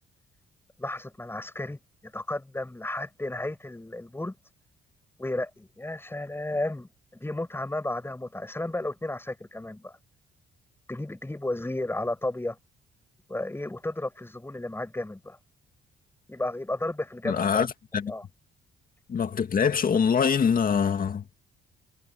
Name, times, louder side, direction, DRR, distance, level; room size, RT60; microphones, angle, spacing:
voice 1, 0.8-4.4 5.2-10.0 10.9-12.6 13.3-15.4 16.3-17.7 18.1-18.2, left 1 dB, 10° left, 7.7 m, -33 dB
voice 2, 17.2-18.1 19.1-21.2, left 6 dB, 45° left, 2.2 m, -24 dB
cardioid pair, 90°, 20 cm